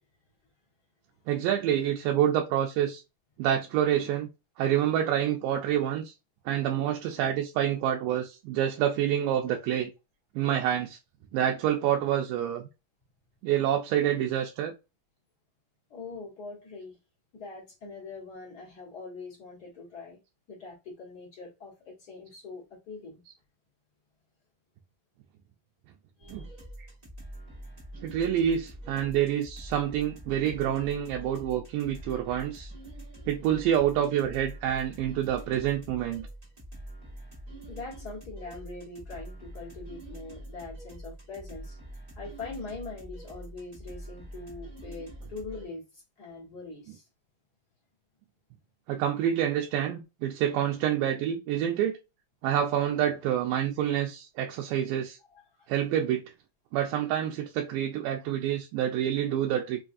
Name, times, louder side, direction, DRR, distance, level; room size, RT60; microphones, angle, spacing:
voice 1, 1.3-3.0 3.4-4.3 4.6-6.1 6.5-9.9 10.4-11.0 11.3-12.6 13.4-14.7 26.3-26.4 28.0-32.7 33.3-36.3 48.9-52.0 52.4-55.2 55.7-56.2 56.7-59.8, right 10 dB, 90° right, 2.2 m, -27 dB
voice 2, 15.9-17.0 17.3-20.2 20.5-23.2 26.2-26.5 37.6-47.0 55.3-55.7, left 3 dB, 45° left, 1.3 m, -43 dB
sound 1, 26.2-45.7, right 1 dB, 40° right, 0.5 m, -45 dB
5.2 x 2.3 x 2.5 m
omnidirectional pair, 3.8 m